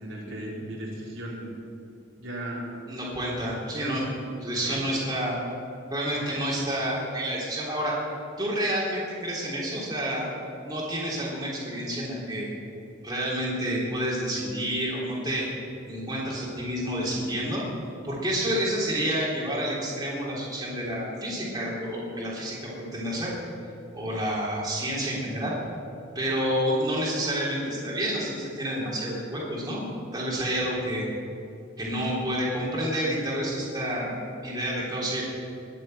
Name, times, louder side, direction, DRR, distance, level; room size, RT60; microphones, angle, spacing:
voice 1, 0.0-1.5 2.2-2.7 3.7-4.0 4.5-4.8, right 1 dB, 85° right, -4 dB, 3.9 m, -36 dB
voice 2, 2.9-4.1 4.4-5.4 5.9-7.9 8.4-10.3 10.7-12.5 13.0-15.5 15.9-17.6 18.0-23.3 23.9-25.5 26.1-29.8 30.1-31.0 31.8-35.2, equal, 20° right, -5 dB, 3.5 m, -29 dB
21.0 x 7.5 x 7.8 m, 2.6 s
head